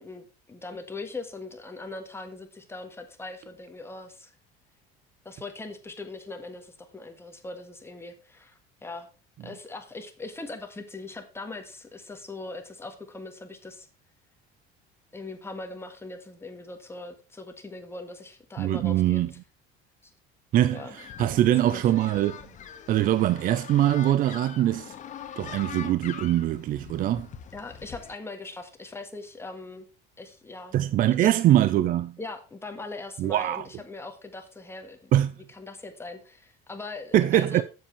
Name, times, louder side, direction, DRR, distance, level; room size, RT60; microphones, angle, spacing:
voice 1, 0.0-4.3 5.2-9.1 9.4-13.9 15.1-19.4 20.0-20.1 20.7-20.9 21.7-21.8 27.5-29.9 30.2-30.7 31.1-31.4 32.2-35.1 35.5-37.6, left 3 dB, 10° left, 1.5 m, -40 dB
voice 2, 18.6-19.3 20.5-22.4 22.9-24.9 25.4-27.3 30.7-32.2 33.2-33.6 35.1-35.3 37.1-37.6, right 12 dB, 45° right, 0.4 m, -23 dB
sound 1, 20.8-28.1, left 8 dB, 40° left, 1.0 m, -43 dB
7.5 x 7.1 x 4.5 m
cardioid pair, 120°, 20 cm